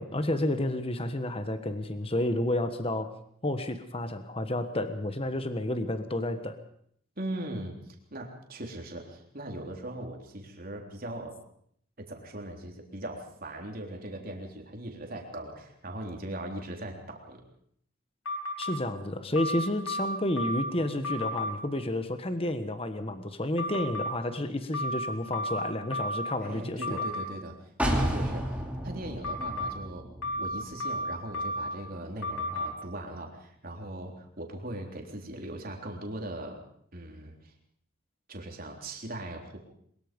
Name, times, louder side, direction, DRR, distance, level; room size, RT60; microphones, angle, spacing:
voice 1, 0.0-3.1 3.4-6.6 18.6-27.1, left 1 dB, 25° left, 9 dB, 1.3 m, -31 dB
voice 2, 7.2-11.4 12.0-17.4 26.4-27.5 27.8-30.1 30.4-36.6 36.9-37.5 38.3-39.6, right 1 dB, 45° right, 2 dB, 3.6 m, -39 dB
sound 1, 18.2-18.7 19.3-20.7 21.0-21.5 23.6-24.1 24.7-26.4 26.8-27.3 29.2-29.7 30.2-31.7 32.2-32.7, left 1 dB, 80° left, 5.0 m, -32 dB
sound 2, 27.8-31.5 31.9-32.0, equal, 5° right, 3.0 m, -32 dB
22.5 x 21.5 x 5.3 m, 0.66 s
head